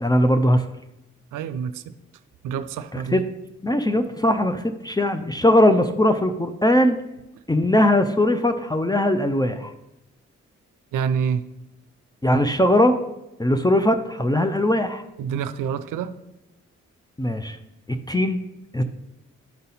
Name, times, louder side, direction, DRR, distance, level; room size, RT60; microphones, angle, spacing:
voice 1, 0.0-0.6 2.9-3.2 3.6-7.0 7.5-9.7 12.2-12.9 13.4-15.0 17.2-17.6 18.1-18.4 18.7-18.8, left 1 dB, 15° left, 8 dB, 0.6 m, -20 dB
voice 2, 1.3-1.9 2.4-3.2 7.7-7.8 10.9-11.4 15.2-16.1, right 7 dB, 80° right, 12 dB, 0.5 m, -27 dB
11.0 x 4.0 x 4.0 m, 0.92 s
supercardioid pair, 40°, 31 cm